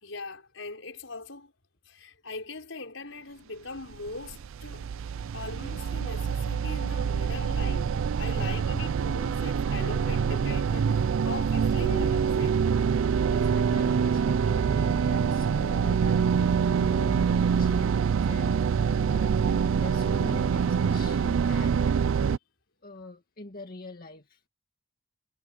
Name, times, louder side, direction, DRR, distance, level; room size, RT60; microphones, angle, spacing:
voice 1, 0.0-1.5 1.9-4.9 5.3-12.6, left 3 dB, 75° left, 5.2 m, -40 dB
sound 1, 3.9-22.4, right 6 dB, 80° right, 0.4 m, -25 dB
voice 2, 8.2-8.7 13.2-22.0 22.8-24.5, left 2 dB, 45° left, 2.0 m, -44 dB
head